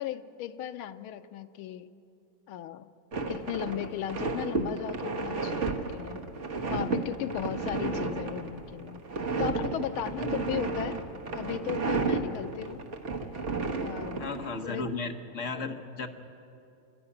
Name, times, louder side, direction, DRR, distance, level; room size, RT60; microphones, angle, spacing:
voice 1, 0.0-1.9 2.5-2.9 3.3-6.2 6.7-9.0 9.4-11.0 11.3-12.8 13.8-14.2 14.6-14.9, left 11 dB, 80° left, 10 dB, 1.6 m, -36 dB
sound 1, 3.1-14.9, right 3 dB, 40° right, 1.5 m, -32 dB
voice 2, 14.2-16.1, left 3 dB, 45° left, 4 dB, 1.3 m, -35 dB
26.0 x 12.5 x 9.9 m, 2.7 s
omnidirectional pair, 2.3 m